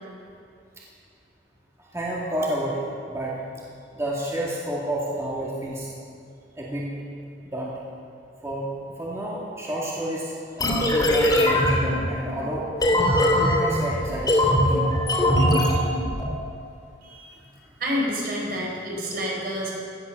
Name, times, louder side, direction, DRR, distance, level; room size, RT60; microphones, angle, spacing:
voice 1, 1.9-3.4 3.9-5.9 6.6-6.9 7.4-7.7 8.4-8.7 9.0-12.7 13.2-14.7, right 1 dB, 15° right, -5 dB, 2.1 m, -30 dB
sound 1, 10.6-16.3, left 1 dB, 25° left, 3.1 m, -21 dB
voice 2, 17.0-17.3 17.8-19.8, equal, 60° right, -2 dB, 4.5 m, -28 dB
17.5 x 11.5 x 6.6 m, 2.4 s
head